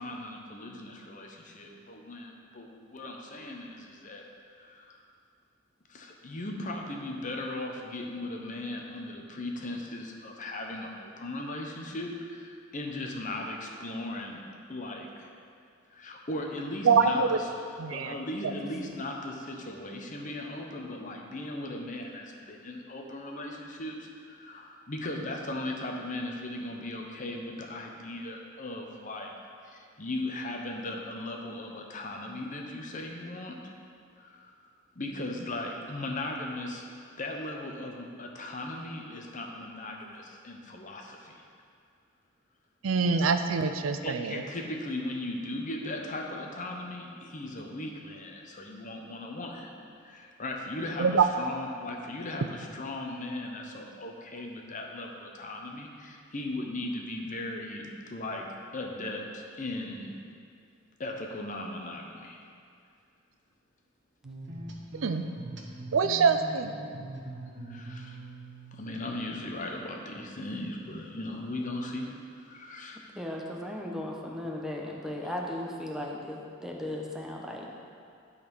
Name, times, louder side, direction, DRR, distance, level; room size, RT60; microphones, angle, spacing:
voice 1, 0.0-4.2 4.5-5.0 5.9-14.4 14.7-15.3 15.9-17.5 17.9-29.3 29.6-33.7 34.2-34.5 34.9-36.8 37.2-41.3 44.0-49.7 50.0-58.5 58.7-60.1 61.0-62.4 67.7-68.2 68.7-72.1 72.5-73.0, left 1 dB, 40° left, 1 dB, 0.9 m, -37 dB
voice 2, 16.8-17.4 17.8-18.1 42.8-44.4 51.0-51.3 65.0-65.2 65.9-66.7, right 5 dB, 85° right, 8 dB, 0.5 m, -24 dB
sound 1, 64.2-69.4, right 2 dB, 60° right, 1.0 m, -42 dB
voice 3, 73.1-77.7, left 1 dB, ahead, -1 dB, 0.9 m, -36 dB
11.5 x 4.2 x 5.3 m, 2.3 s
head